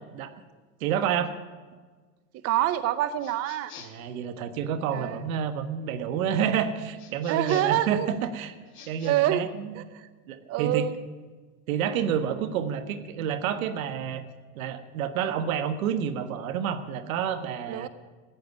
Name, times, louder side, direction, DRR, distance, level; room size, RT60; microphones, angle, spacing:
voice 1, 0.8-1.3 3.8-8.6 8.9-9.7 10.3-10.9 11.7-14.2 14.5-17.9, right 8 dB, 85° right, 12 dB, 1.4 m, -29 dB
voice 2, 2.4-3.7 4.9-5.2 7.3-8.1 9.0-9.5 9.8-10.1 10.5-11.0 17.7-17.9, right 13 dB, 35° right, 15 dB, 0.6 m, -26 dB
sound 1, 3.2-4.1 7.0-7.9 8.7-9.1, left 6 dB, 30° left, 2.5 m, -47 dB
14.0 x 8.7 x 9.6 m, 1.4 s
supercardioid pair, 130°, 41 cm